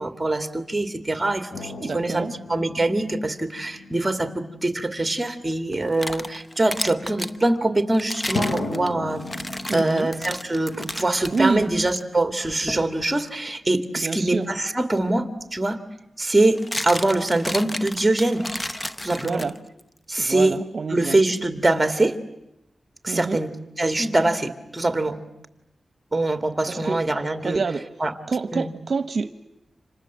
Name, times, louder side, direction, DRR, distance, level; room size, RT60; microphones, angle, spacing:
voice 1, 0.0-9.3 9.7-15.8 16.2-18.5 19.0-19.4 20.1-20.6 20.9-22.2 23.0-23.5 23.8-25.2 26.1-27.6 28.0-28.1 28.5-28.7, right 2 dB, 15° right, 7 dB, 2.5 m, -23 dB
sound 1, 1.5-5.5 6.3-6.4 8.3-11.7 12.0-12.1, left 2 dB, 85° left, 6.0 m, -36 dB
voice 2, 1.8-2.3 9.7-10.1 11.3-11.6 14.0-14.5 19.1-19.5 20.2-21.2 23.1-23.4 26.7-27.0 27.4-27.8 28.3-29.3, right 4 dB, 60° right, 10 dB, 0.9 m, -27 dB
sound 2, 5.7-7.4 7.9-11.4 11.9-12.0 12.7-12.9 15.0-15.1 16.3-19.8, left 1 dB, 20° left, 1.0 m, -32 dB
30.0 x 26.5 x 7.5 m, 0.87 s
cardioid pair, 75°, 0 cm